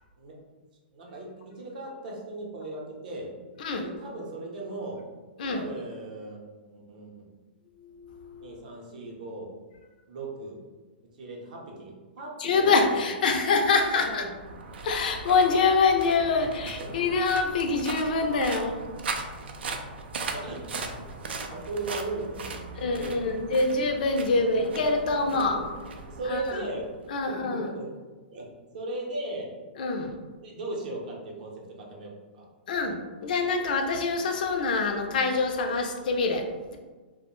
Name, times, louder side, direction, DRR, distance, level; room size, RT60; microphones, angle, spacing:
voice 1, 0.9-3.3 3.8-5.0 5.5-7.1 8.4-9.5 10.1-10.6 11.2-13.1 13.9-14.3 16.4-16.5 16.8-16.9 20.3-23.4 24.4-25.7 26.1-26.9 27.3-27.8 28.3-28.5 28.7-29.5 30.4-32.5, right 2 dB, 50° right, -2 dB, 0.6 m, -38 dB
voice 2, 3.6-3.9 5.4-5.7 7.8-8.6 12.4-14.2 14.8-18.8 22.8-25.6 26.3-26.7 27.1-27.7 29.8-30.1 32.7-36.8, left 4 dB, 55° left, 4 dB, 0.4 m, -25 dB
sound 1, 13.8-27.2, right 4 dB, 90° right, 0.3 m, -39 dB
2.4 x 2.0 x 3.0 m, 1.3 s
hypercardioid pair, 170°, 6 cm